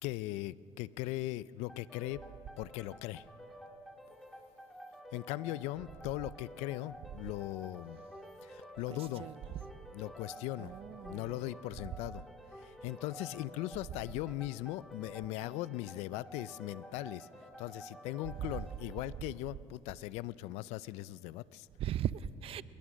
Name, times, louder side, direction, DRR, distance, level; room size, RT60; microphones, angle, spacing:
voice 1, 0.0-2.2 2.6-3.2 5.1-8.0 8.4-9.3 9.9-10.7 11.0-12.3 12.6-17.3 17.6-21.7, left 16 dB, 80° left, 19 dB, 0.5 m, -39 dB
sound 1, 1.7-19.1, equal, ahead, 3.5 m, -51 dB
voice 2, 8.9-9.3 10.6-11.5 21.8-22.6, right 11 dB, 60° right, 16 dB, 0.7 m, -38 dB
26.5 x 21.0 x 6.3 m, 2.6 s
supercardioid pair, 80°, 11 cm